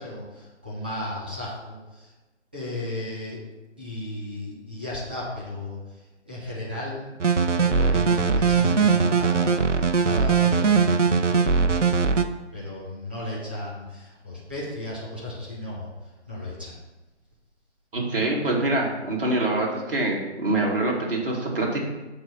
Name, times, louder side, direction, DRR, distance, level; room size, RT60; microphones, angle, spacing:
voice 1, 0.0-2.1 2.5-3.4 3.8-7.1 7.6-11.8 12.5-16.7, left 1 dB, 10° right, -7 dB, 0.7 m, -35 dB
sound 1, 7.2-12.2, right 5 dB, 85° right, 0.7 m, -20 dB
voice 2, 17.9-21.8, right 2 dB, 50° right, -3 dB, 2.2 m, -25 dB
6.5 x 4.4 x 5.8 m, 1.1 s
figure-of-eight pair, 150°, 36 cm